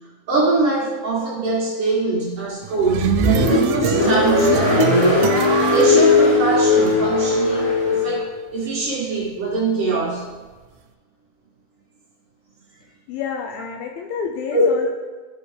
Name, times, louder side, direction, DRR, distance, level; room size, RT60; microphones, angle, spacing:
voice 1, 0.3-5.4 5.7-8.3 8.5-10.2 14.5-14.6, right 3 dB, 70° right, -6 dB, 1.4 m, -23 dB
sound 1, 2.6-6.9, right 10 dB, 85° right, 2.7 m, -24 dB
Car, 2.8-8.2, left 3 dB, 65° left, 2.8 m, -18 dB
voice 2, 13.1-14.9, left 6 dB, 80° left, 1 dB, 2.2 m, -28 dB
13.0 x 5.4 x 3.3 m, 1.3 s
omnidirectional pair, 4.8 m